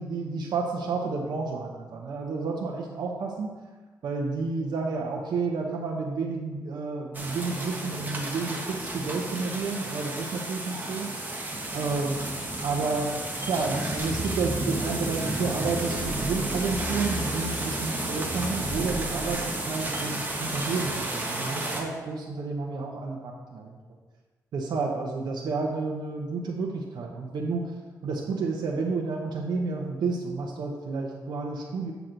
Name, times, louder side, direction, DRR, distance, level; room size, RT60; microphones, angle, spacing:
voice 1, 0.0-3.5 4.0-11.1 11.7-12.2 12.6-23.8 24.5-27.7 28.0-31.9, right 4 dB, 90° right, -1 dB, 0.8 m, -31 dB
sound 1, 7.1-21.8, right 2 dB, 25° right, 1.3 m, -32 dB
sound 2, 14.0-19.3, right 1 dB, 20° left, 1.5 m, -38 dB
8.1 x 6.0 x 3.9 m, 1.3 s
cardioid pair, 105°, 7 cm